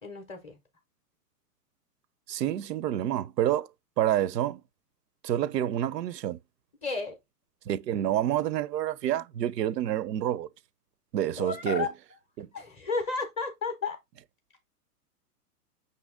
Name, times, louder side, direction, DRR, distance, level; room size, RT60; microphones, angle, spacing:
voice 1, 0.0-0.6 6.8-7.2 11.4-11.9 12.5-14.0, left 4 dB, 15° left, 0.5 m, -32 dB
voice 2, 2.3-3.7 4.0-4.6 5.2-6.4 7.7-10.5 11.1-11.9 12.4-12.5, right 11 dB, 85° right, 0.5 m, -28 dB
5.7 x 2.7 x 3.5 m
hypercardioid pair, 130°, 47 cm